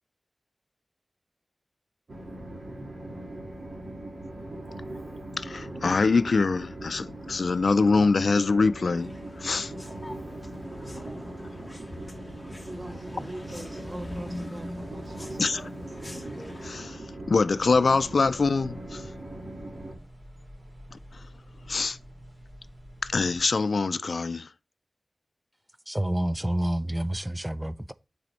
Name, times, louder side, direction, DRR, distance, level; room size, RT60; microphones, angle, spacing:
Train, 2.1-19.9, right 1 dB, 80° right, 1.7 m, -40 dB
voice 1, 5.4-9.1 9.4-9.7 15.4-15.7 16.6-19.1 20.9-21.3 21.7-22.0 23.0-24.5, left 4 dB, 90° left, 0.3 m, -24 dB
sound 1, 9.0-16.8, left 1 dB, 30° left, 0.8 m, -43 dB
voice 2, 12.6-15.7, right 1 dB, 60° right, 0.6 m, -42 dB
sound 2, 17.6-23.4, equal, 35° right, 2.5 m, -48 dB
voice 3, 25.9-27.9, right 1 dB, 10° right, 0.4 m, -28 dB
9.5 x 4.2 x 3.1 m
wide cardioid pair, 65°, 0 cm